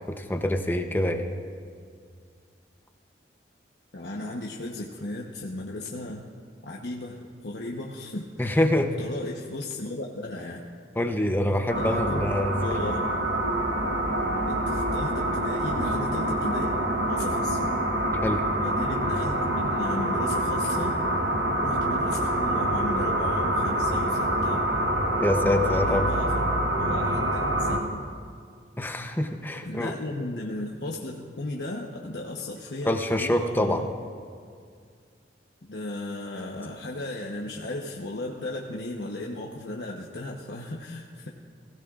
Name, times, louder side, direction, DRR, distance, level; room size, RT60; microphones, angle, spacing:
voice 1, 0.2-1.3 8.4-8.9 11.0-12.6 12.8-12.9 18.2-18.4 25.2-26.1 28.8-29.9 32.8-33.8, left 1 dB, 10° left, 5 dB, 0.7 m, -25 dB
voice 2, 3.9-6.3 6.6-8.6 9.0-10.6 11.7-12.2 12.6-13.1 14.5-16.7 17.1-17.7 18.6-21.0 21.6-24.6 25.4-26.4 26.8-28.1 29.6-33.9 35.7-41.3, left 2 dB, 75° left, -2 dB, 1.0 m, -35 dB
sound 1, 11.7-27.8, right 1 dB, 80° right, 1.2 m, -26 dB
22.5 x 16.0 x 2.5 m, 2.1 s
head